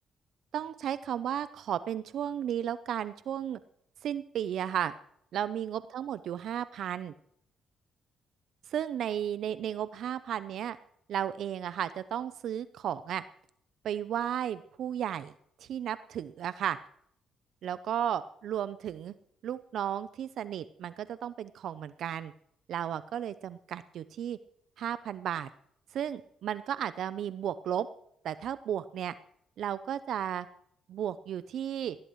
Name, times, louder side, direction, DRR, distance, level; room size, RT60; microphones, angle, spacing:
voice 1, 0.5-3.6 4.0-4.9 5.3-7.1 8.7-10.8 11.1-13.2 13.8-15.3 15.6-16.8 17.6-19.1 19.4-22.3 22.7-24.4 24.8-25.5 25.9-27.9 28.2-29.1 29.6-30.5 30.9-32.0, right 10 dB, 70° right, 14 dB, 0.6 m, -34 dB
19.5 x 17.0 x 3.1 m, 0.68 s
cardioid pair, 90°, 0 cm